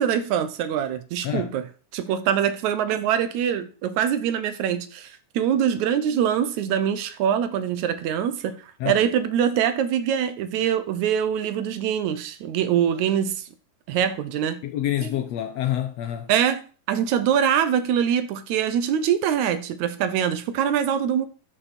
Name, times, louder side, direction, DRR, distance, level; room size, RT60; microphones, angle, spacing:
voice 1, 0.0-1.6 1.9-13.4 13.9-14.6 15.0-15.1 16.3-16.6 16.9-21.3, right 9 dB, 75° right, 2.0 m, -24 dB
voice 2, 1.2-1.6 8.8-9.0 14.6-16.3, left 12 dB, 75° left, 1.6 m, -27 dB
12.0 x 7.0 x 4.3 m
omnidirectional pair, 3.6 m